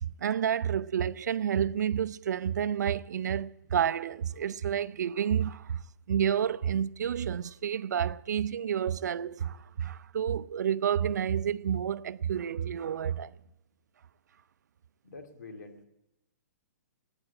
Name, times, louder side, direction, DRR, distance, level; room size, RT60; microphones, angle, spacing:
voice 1, 0.0-5.8 6.1-13.3, right 9 dB, 75° right, 0.5 m, -30 dB
voice 2, 15.0-15.9, left 3 dB, 80° left, 2.6 m, -46 dB
14.0 x 9.8 x 8.6 m
hypercardioid pair, 165°, 9 cm